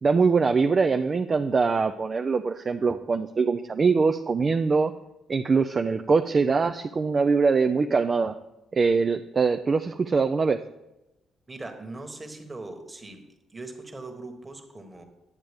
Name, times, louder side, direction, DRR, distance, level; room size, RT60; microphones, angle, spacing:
voice 1, 0.0-4.9 5.3-8.3 8.7-10.6, right 4 dB, 35° right, 6 dB, 0.4 m, -23 dB
voice 2, 11.5-15.0, right 2 dB, 20° right, 4 dB, 1.3 m, -40 dB
9.5 x 7.4 x 3.5 m, 0.95 s
cardioid pair, 90°, 0 cm